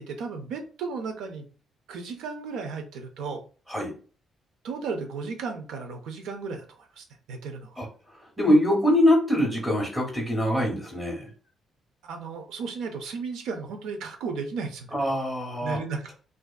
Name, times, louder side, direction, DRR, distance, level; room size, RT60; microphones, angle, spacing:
voice 1, 0.0-1.5 1.9-3.4 4.6-7.8 12.0-14.9 15.6-16.1, right 4 dB, 85° right, 5 dB, 0.5 m, -34 dB
voice 2, 8.4-11.3 14.9-15.8, left 1 dB, 20° right, -2 dB, 1.0 m, -23 dB
2.5 x 2.2 x 2.2 m, 0.39 s
cardioid pair, 90°, 0 cm